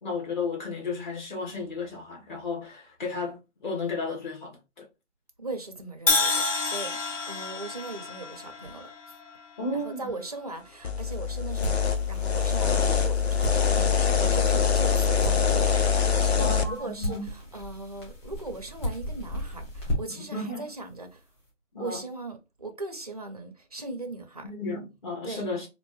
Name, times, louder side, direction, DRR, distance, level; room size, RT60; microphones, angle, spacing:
voice 1, 0.0-4.9 9.6-10.1 12.9-13.0 16.3-17.3 20.2-20.7 21.7-22.0 24.4-25.7, left 3 dB, 40° left, 1.3 m, -33 dB
voice 2, 5.4-8.9 9.7-21.2 21.8-24.5 25.2-25.5, right 2 dB, 35° right, 0.4 m, -39 dB
Crash cymbal, 6.1-10.1, left 4 dB, 75° left, 1.0 m, -29 dB
sound 1, 10.8-16.7, left 6 dB, 55° left, 0.6 m, -24 dB
sound 2, 11.5-20.3, left 1 dB, 25° left, 1.4 m, -36 dB
3.5 x 2.5 x 3.0 m
hypercardioid pair, 160°, 37 cm